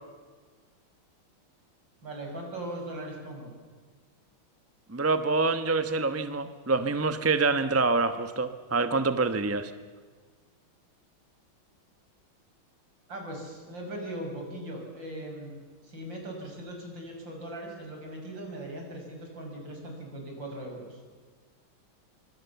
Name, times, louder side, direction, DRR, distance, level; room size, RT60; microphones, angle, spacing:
voice 1, 2.0-3.5 13.1-15.6 15.8-21.0, right 1 dB, 60° right, 1 dB, 6.9 m, -39 dB
voice 2, 4.9-9.7, right 3 dB, 15° right, 10 dB, 0.5 m, -26 dB
25.5 x 24.5 x 7.1 m, 1.5 s
omnidirectional pair, 2.3 m